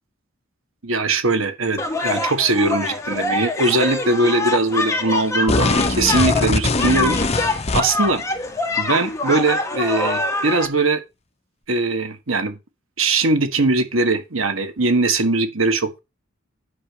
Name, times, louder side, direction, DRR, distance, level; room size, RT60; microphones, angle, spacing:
voice 1, 0.8-7.2 7.7-8.2 8.8-11.0 11.7-12.6 13.0-16.0, right 3 dB, 80° right, 1.7 m, -20 dB
sound 1, 1.8-10.7, left 2 dB, 15° left, 1.8 m, -24 dB
sound 2, 5.5-8.1, left 3 dB, 30° left, 0.9 m, -21 dB
9.9 x 6.8 x 5.2 m
head